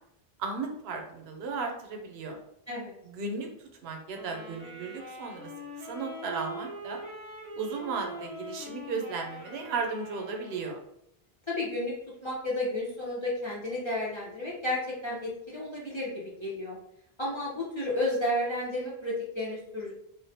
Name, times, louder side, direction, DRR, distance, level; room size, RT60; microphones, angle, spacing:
voice 1, 0.4-2.4 3.0-3.5 3.8-5.5 5.8-7.0 7.6-10.8, right 4 dB, 80° right, 2 dB, 0.8 m, -35 dB
sound 1, 4.1-10.7, equal, 10° left, 0.9 m, -42 dB
voice 2, 11.5-11.9 12.2-16.1 16.4-16.8 17.2-19.9, left 1 dB, 35° left, -6 dB, 0.5 m, -32 dB
2.4 x 2.1 x 2.6 m, 0.76 s
omnidirectional pair, 1.0 m